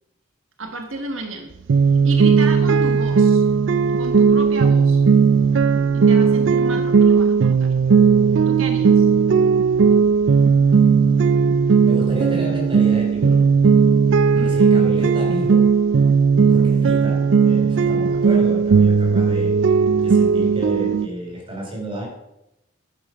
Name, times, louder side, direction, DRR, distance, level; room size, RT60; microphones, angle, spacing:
voice 1, 0.6-1.5 2.0-3.4 4.0-5.0 5.9-7.7 8.5-9.1 14.3-14.6, right 2 dB, 85° right, 4 dB, 1.3 m, -31 dB
sound 1, 1.7-21.1, right 5 dB, 70° right, 0.4 m, -16 dB
voice 2, 11.8-13.4 14.3-15.6 16.5-19.5 20.0-22.1, right 1 dB, 25° right, -2 dB, 4.9 m, -30 dB
12.0 x 7.4 x 6.3 m, 0.89 s
head